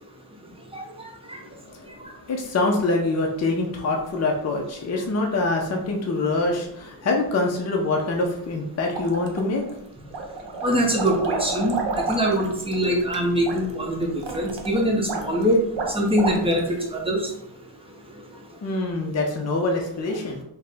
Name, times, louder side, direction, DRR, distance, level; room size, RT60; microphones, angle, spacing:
voice 1, 2.3-9.6 18.6-20.4, left 2 dB, 40° left, 0 dB, 0.5 m, -25 dB
sound 1, 8.9-9.7 10.1-16.8, right 3 dB, 75° right, 0.7 m, -31 dB
voice 2, 10.6-11.8 12.1-14.1 14.3-15.6 15.9-17.2, equal, 15° right, 0 dB, 0.6 m, -23 dB
4.0 x 2.1 x 3.4 m, 0.77 s
wide cardioid pair, 165°, 43 cm